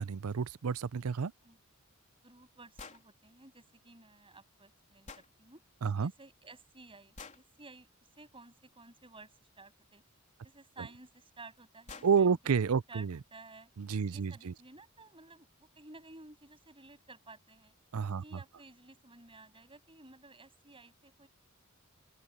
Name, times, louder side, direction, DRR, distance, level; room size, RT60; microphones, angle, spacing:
voice 1, 0.0-1.3 5.8-6.1 10.8-10.9 12.0-13.2 13.8-14.5 17.9-18.4, right 6 dB, 80° right, 0.5 m, -30 dB
voice 2, 2.2-5.6 6.0-7.9 8.2-10.0 10.4-12.4 12.9-13.7 14.1-17.7 18.2-21.3, right 3 dB, 25° right, 7.8 m, -54 dB
sound 1, 2.8-3.1 5.1-5.3 7.2-7.5 9.7-9.8 11.1-11.2 11.6-11.7 11.9-12.2, left 4 dB, 35° left, 3.7 m, -48 dB
open air
head